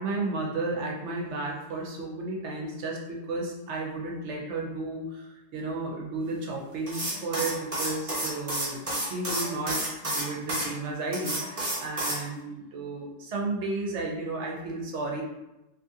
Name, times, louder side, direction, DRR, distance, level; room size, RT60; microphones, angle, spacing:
voice 1, 0.0-15.2, right 2 dB, 85° right, -2 dB, 1.0 m, -33 dB
sound 1, 6.9-10.7 11.1-12.2, right 1 dB, 30° right, 1.0 m, -30 dB
2.9 x 2.5 x 2.6 m, 0.95 s
omnidirectional pair, 1.1 m